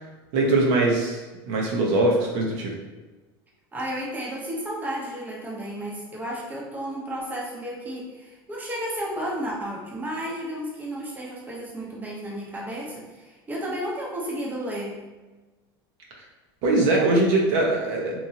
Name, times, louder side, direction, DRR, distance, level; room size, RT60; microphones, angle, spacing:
voice 1, 0.3-1.2 1.5-2.7 16.6-18.2, right 2 dB, 60° right, -2 dB, 0.8 m, -21 dB
voice 2, 3.7-15.0, equal, 15° right, -4 dB, 0.7 m, -32 dB
3.0 x 2.6 x 2.8 m, 1.2 s
supercardioid pair, 115°, 13 cm